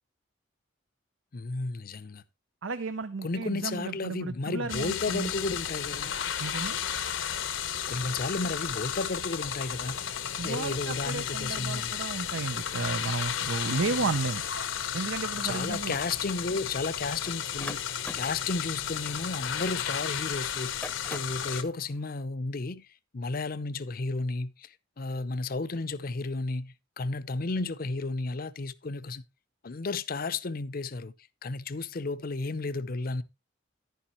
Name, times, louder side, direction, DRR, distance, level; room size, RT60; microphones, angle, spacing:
voice 1, 1.3-2.2 3.2-6.1 7.9-10.0 10.4-12.0 13.7-14.1 15.4-17.8 18.1-20.8 21.1-22.9 23.1-29.2 29.6-31.1 31.4-33.2, left 3 dB, 50° left, 0.6 m, -33 dB
voice 2, 2.6-5.3 6.4-6.8 10.4-14.4 14.9-15.9, right 4 dB, 80° right, 0.7 m, -33 dB
sound 1, 4.7-21.6, left 9 dB, 80° left, 1.0 m, -33 dB
sound 2, 17.2-20.0 20.6-21.5, left 2 dB, 10° left, 0.7 m, -43 dB
10.5 x 10.0 x 3.0 m
head